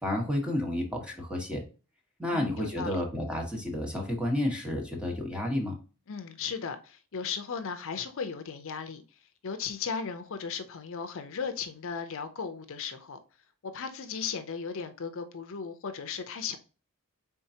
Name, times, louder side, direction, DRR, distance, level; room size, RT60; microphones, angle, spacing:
voice 1, 0.0-1.6 2.2-5.7, left 1 dB, 5° right, 1.2 m, -31 dB
voice 2, 2.3-3.0 6.1-9.0 9.4-13.2 13.6-16.6, left 6 dB, 65° left, 0.5 m, -36 dB
4.5 x 3.7 x 2.7 m
head